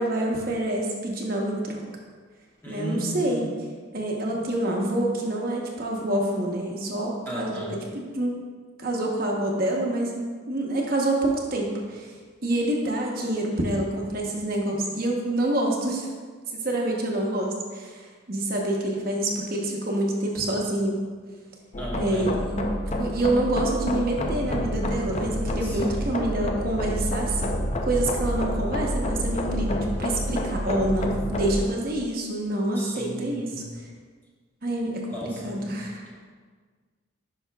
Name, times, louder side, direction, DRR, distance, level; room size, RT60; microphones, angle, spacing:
voice 1, 0.0-1.8 2.7-3.5 3.9-8.3 8.8-12.1 12.4-16.1 16.5-21.0 22.0-22.6 23.0-27.5 27.8-33.5 34.6-35.1 35.4-36.1, right 1 dB, 45° right, -1 dB, 0.9 m, -27 dB
voice 2, 2.6-3.6 7.3-7.8 21.8-22.4 25.6-26.2 32.7-33.7 35.1-35.7, equal, 10° left, -4 dB, 1.0 m, -35 dB
sound 1, 21.7-31.6, equal, 35° left, 0.5 m, -28 dB
10.5 x 5.6 x 2.3 m, 1.5 s
head